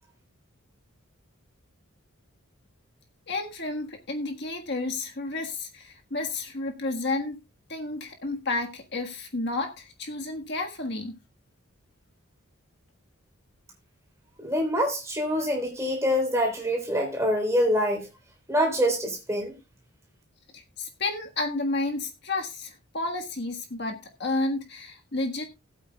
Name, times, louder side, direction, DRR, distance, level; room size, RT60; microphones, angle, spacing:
voice 1, 3.3-7.4 7.7-11.2 20.5-25.4, left 2 dB, 50° left, 1.6 m, -31 dB
voice 2, 14.4-18.1 18.5-19.5, equal, 15° right, 3.6 m, -25 dB
19.5 x 8.5 x 2.3 m
head